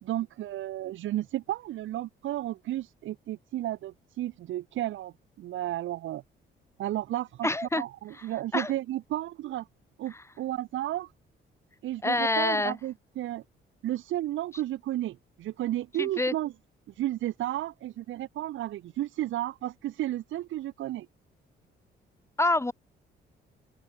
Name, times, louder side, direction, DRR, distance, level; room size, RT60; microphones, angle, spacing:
voice 1, 0.0-6.2 6.8-7.5 7.7-9.7 10.0-11.1 11.8-13.4 13.8-16.5 17.0-21.1, right 14 dB, 80° right, 1.5 m, -33 dB
voice 2, 7.4-7.8 8.5-8.7 12.0-12.8 16.0-16.3 22.4-22.7, left 2 dB, 15° left, 2.3 m, -26 dB
open air
cardioid pair, 90°, 20 cm